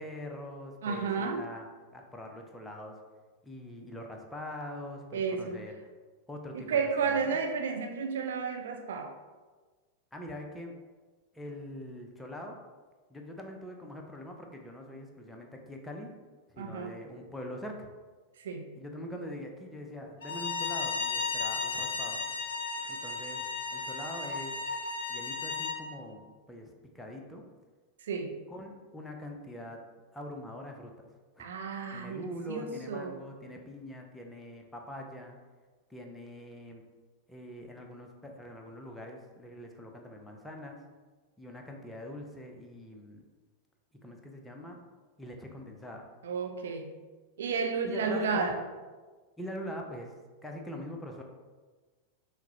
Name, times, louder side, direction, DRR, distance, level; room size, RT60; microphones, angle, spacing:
voice 1, 0.0-1.7 1.9-2.9 3.4-5.7 6.3-7.4 10.1-10.7 11.3-12.6 13.1-16.1 16.5-17.9 18.8-22.2 22.9-23.4 23.7-24.6 25.1-27.4 28.5-29.8 30.1-30.9 31.4-31.5 31.9-35.4 35.9-36.8 37.3-40.8 41.4-43.3 44.0-44.8 45.2-46.0 47.9-48.5 49.4-50.1 50.4-51.2, left 1 dB, 5° left, 1 dB, 0.5 m, -43 dB
voice 2, 0.8-1.5 5.1-5.6 6.5-9.1 16.6-16.9 18.4-18.7 28.0-28.4 31.4-33.2 46.2-46.9 47.4-48.6, right 5 dB, 60° right, 5 dB, 0.3 m, -32 dB
Bowed string instrument, 20.2-25.8, left 4 dB, 60° left, 0.5 m, -34 dB
5.8 x 2.1 x 2.7 m, 1.3 s
figure-of-eight pair, 90°, 0 cm